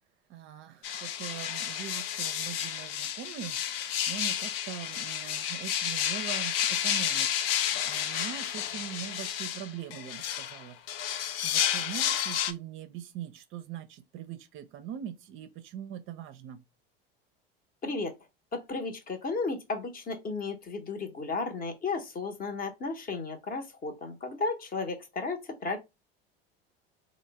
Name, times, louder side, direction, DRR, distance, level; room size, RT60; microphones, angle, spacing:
voice 1, 0.3-16.6, right 10 dB, 45° right, 0.5 m, -42 dB
sound 1, 0.8-12.5, left 10 dB, 70° left, 0.5 m, -31 dB
voice 2, 17.8-18.1 18.5-25.8, left 3 dB, 30° left, 0.8 m, -34 dB
3.1 x 2.1 x 3.2 m
hypercardioid pair, 75°, 30 cm